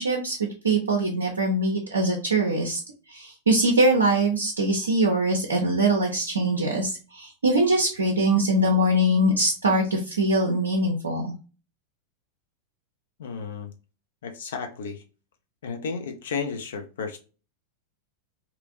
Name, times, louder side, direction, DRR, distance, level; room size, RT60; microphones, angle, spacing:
voice 1, 0.0-2.8 3.1-11.3, right 1 dB, 75° right, 1 dB, 0.5 m, -23 dB
voice 2, 13.2-13.7 14.2-15.0 15.6-17.2, left 5 dB, 60° left, 6 dB, 0.6 m, -33 dB
2.9 x 2.5 x 2.4 m, 0.33 s
figure-of-eight pair, 90°, 0 cm